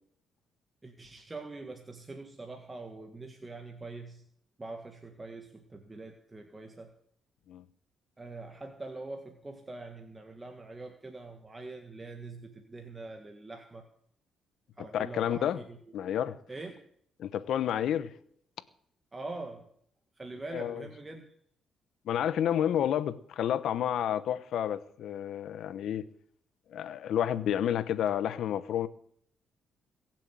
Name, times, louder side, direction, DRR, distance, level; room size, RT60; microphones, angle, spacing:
voice 1, 0.8-4.2 4.6-6.9 8.2-13.9 14.8-15.8 16.5-16.8 19.1-19.7 20.2-21.3, right 3 dB, 20° right, 4 dB, 1.7 m, -44 dB
voice 2, 14.9-15.6 15.9-16.4 17.2-18.1 20.5-20.8 22.1-26.1 26.7-28.9, left 10 dB, 75° left, 14 dB, 1.0 m, -30 dB
22.0 x 7.6 x 7.6 m, 0.65 s
cardioid pair, 90°, 0 cm